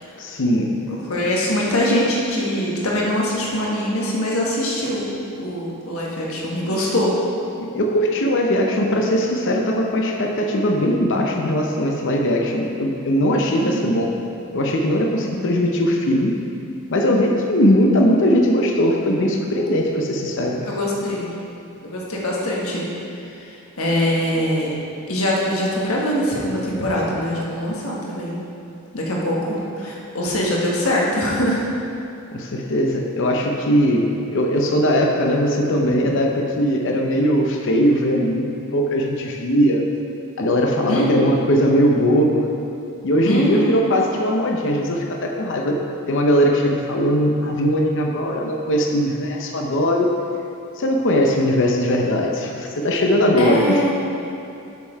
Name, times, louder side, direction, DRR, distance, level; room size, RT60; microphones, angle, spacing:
voice 1, 0.2-0.8 7.6-14.1 14.5-16.4 16.9-20.7 32.3-39.8 40.4-42.5 43.0-50.1 50.8-53.9, equal, 60° left, 1 dB, 0.7 m, -20 dB
voice 2, 0.9-5.0 5.4-7.1 13.5-13.9 15.1-15.5 20.6-21.3 21.8-22.9 23.4-24.7 25.1-28.4 28.9-31.6 35.9-36.0 40.9-41.2 43.2-43.8 53.4-53.9, equal, 75° left, -4 dB, 1.5 m, -23 dB
6.9 x 6.4 x 4.6 m, 2.7 s
head